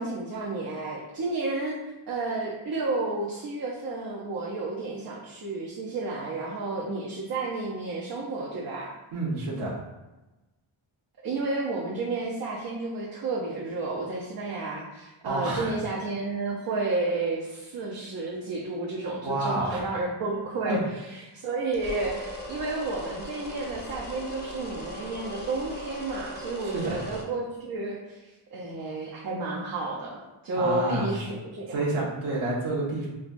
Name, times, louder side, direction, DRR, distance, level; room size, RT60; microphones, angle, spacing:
voice 1, 0.0-1.8 2.1-8.9 11.2-20.8 21.1-31.9, right 3 dB, 45° right, -4 dB, 0.5 m, -31 dB
voice 2, 9.1-9.8 15.2-15.8 19.2-19.8 20.7-20.8 26.6-27.0 30.6-31.1 31.7-33.1, right 2 dB, 70° right, -6 dB, 0.9 m, -29 dB
sound 1, 21.7-27.2, equal, 20° left, 0.5 m, -39 dB
4.5 x 2.2 x 2.5 m, 1.1 s
wide cardioid pair, 175°, 50 cm